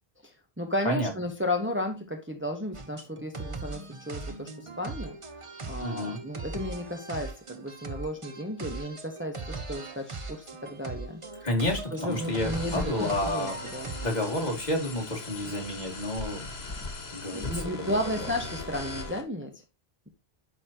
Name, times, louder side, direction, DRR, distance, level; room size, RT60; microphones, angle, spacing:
voice 1, 0.2-5.2 5.7-11.2 11.9-13.9 17.3-19.6, left 1 dB, 10° right, 3 dB, 1.2 m, -33 dB
sound 1, 2.7-14.5, right 3 dB, 35° right, 0.9 m, -40 dB
voice 2, 5.8-6.2 11.4-13.6 14.0-16.5 17.1-17.9, left 1 dB, 45° left, -1 dB, 2.8 m, -30 dB
sound 2, 12.1-19.2, left 3 dB, 75° left, 1.9 m, -39 dB
11.5 x 4.3 x 2.9 m, 0.25 s
omnidirectional pair, 1.0 m